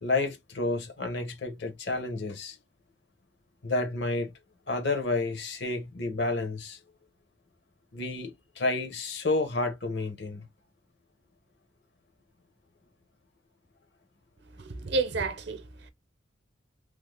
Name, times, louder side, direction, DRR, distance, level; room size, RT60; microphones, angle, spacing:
voice 1, 0.0-2.6 3.6-4.3 4.7-6.8 7.9-10.5, left 2 dB, 60° left, 0.8 m, -30 dB
voice 2, 14.6-15.9, right 3 dB, 60° right, 0.7 m, -31 dB
3.3 x 2.0 x 3.3 m
head